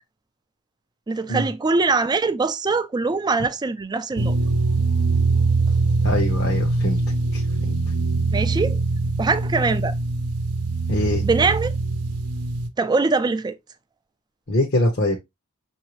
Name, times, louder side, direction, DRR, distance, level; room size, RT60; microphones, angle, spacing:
voice 1, 1.1-4.4 8.3-8.8 9.2-9.9 11.2-11.7 12.8-13.6, right 3 dB, 20° right, 0.3 m, -22 dB
sound 1, 4.2-12.7, right 3 dB, 90° right, 0.6 m, -22 dB
voice 2, 6.0-7.0 7.3-7.4 7.7-7.8 10.9-11.2 14.5-15.2, left 1 dB, 50° left, 0.9 m, -23 dB
5.8 x 2.7 x 2.9 m
head